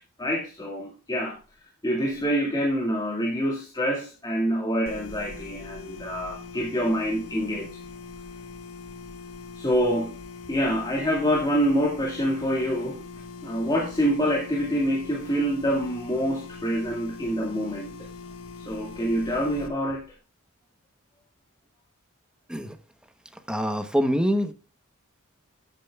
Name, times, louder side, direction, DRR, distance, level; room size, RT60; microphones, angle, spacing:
voice 1, 0.2-1.4 1.8-7.8 9.5-10.2 10.5-13.0 13.4-18.0 18.6-20.0, equal, 20° left, 2.0 m, -26 dB
sound 1, 4.9-19.7, left 4 dB, 80° left, 1.3 m, -42 dB
voice 2, 23.5-24.5, equal, 5° right, 1.0 m, -24 dB
13.5 x 8.9 x 2.3 m
head